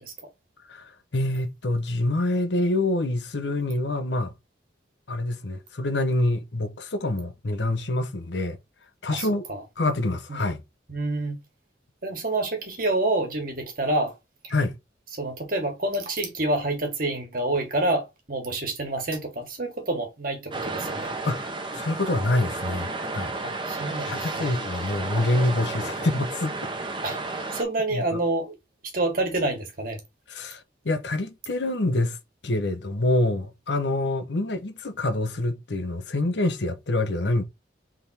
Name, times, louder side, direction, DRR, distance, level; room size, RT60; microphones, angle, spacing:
voice 1, 0.7-4.3 5.1-8.6 9.0-9.4 9.8-10.6 14.5-14.7 21.2-23.3 24.0-26.7 27.9-28.2 30.3-32.2 32.4-37.4, left 2 dB, 70° left, 0.9 m, -26 dB
voice 2, 9.1-9.6 10.3-10.4 10.9-11.4 12.0-14.2 14.4-14.5 15.2-21.1 23.4-24.5 27.0-28.5 28.8-30.0, right 2 dB, 50° right, 1.6 m, -28 dB
sound 1, 20.5-27.6, right 3 dB, 25° right, 0.8 m, -32 dB
3.6 x 3.4 x 4.2 m
head